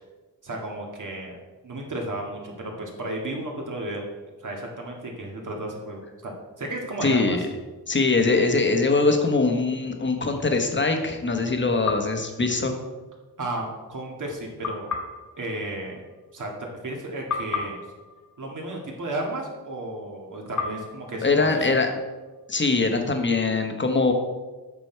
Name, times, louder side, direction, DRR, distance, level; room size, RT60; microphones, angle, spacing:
voice 1, 0.4-1.4 1.6-4.1 4.4-7.4 13.4-14.9 15.4-16.0 16.3-16.5 16.8-17.8 18.4-21.7, right 1 dB, 55° right, 0 dB, 2.0 m, -33 dB
voice 2, 7.0-7.4 7.9-12.7 21.2-21.9 22.5-24.1, left 3 dB, 30° left, 4 dB, 1.2 m, -22 dB
sound 1, 11.8-13.2 14.6-16.9 17.3-19.6 20.6-22.4, left 5 dB, 50° left, 1.8 m, -36 dB
8.3 x 6.0 x 4.5 m, 1.2 s
wide cardioid pair, 105°, 38 cm